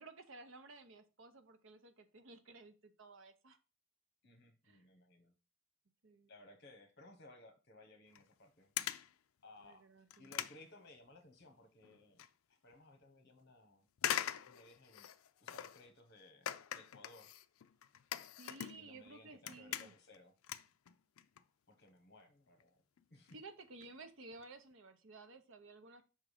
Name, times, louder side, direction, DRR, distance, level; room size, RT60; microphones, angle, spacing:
voice 1, 0.0-3.6 4.6-4.9 6.0-6.3 9.6-10.3 18.4-19.9 23.3-26.0, right 3 dB, 65° right, 8 dB, 0.8 m, -55 dB
voice 2, 4.2-5.3 6.3-8.7 9.4-9.9 10.2-12.2 12.5-13.9 14.4-15.1 15.4-17.3 18.8-20.3 21.7-22.8 23.1-23.4, left 2 dB, 55° left, 6 dB, 1.4 m, -60 dB
sound 1, 8.1-8.3 8.8-9.1 9.6-9.7 10.1-11.5 11.8-12.3 12.7-12.8 14.0-15.9 16.5-19.1 19.3-20.2 20.4-21.4 21.7-21.9 22.6-22.7 23.0-23.1 23.3-23.4 23.6-23.9 24.3-24.4 24.7-24.8, left 10 dB, 75° left, 0.4 m, -42 dB
5.7 x 3.7 x 4.9 m, 0.32 s
head